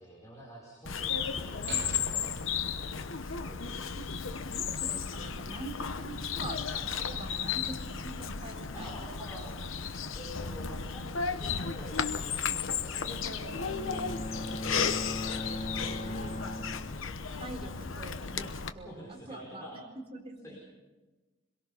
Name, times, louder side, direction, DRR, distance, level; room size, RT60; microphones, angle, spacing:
voice 1, 0.0-2.4 3.5-3.6 8.7-9.8 10.1-16.5 18.8-19.8 20.4-20.6, equal, 15° left, -3 dB, 5.2 m, -48 dB
Bird vocalization bird call bird song, 0.8-18.7, left 6 dB, 70° left, 1.0 m, -34 dB
sound 1, 1.7-3.3, right 6 dB, 60° right, 0.8 m, -45 dB
voice 2, 4.5-9.1 17.3-19.8 20.1-20.6, right 2 dB, 30° right, 1 dB, 4.5 m, -44 dB
Bowed string instrument, 13.5-17.6, left 1 dB, 40° left, 1.9 m, -39 dB
25.5 x 22.5 x 5.6 m, 1.2 s
head